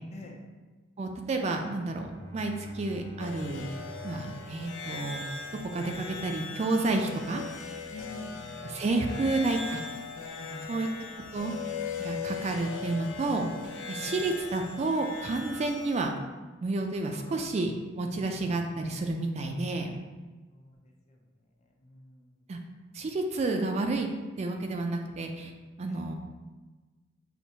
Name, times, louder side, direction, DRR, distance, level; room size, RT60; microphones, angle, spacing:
voice 1, 0.1-0.4 7.9-8.7 9.0-9.2 10.4-10.9 13.9-14.2 17.0-17.7 20.5-20.8 21.1-21.2 21.8-22.3 25.9-26.1, left 2 dB, 35° left, 1 dB, 0.5 m, -47 dB
voice 2, 1.0-3.6 4.0-5.2 5.6-7.4 8.6-9.8 10.7-10.9 11.3-11.6 12.0-13.5 13.9-16.1 16.6-20.0 22.5-22.6 22.9-24.1 24.4-25.5 25.8-26.1, right 2 dB, 35° right, 3 dB, 0.3 m, -30 dB
Bowed string instrument, 1.9-5.7, left 1 dB, 75° right, 0.7 m, -47 dB
sound 1, 3.2-16.1, left 5 dB, 90° left, 0.4 m, -39 dB
5.9 x 2.1 x 2.7 m, 1.3 s
head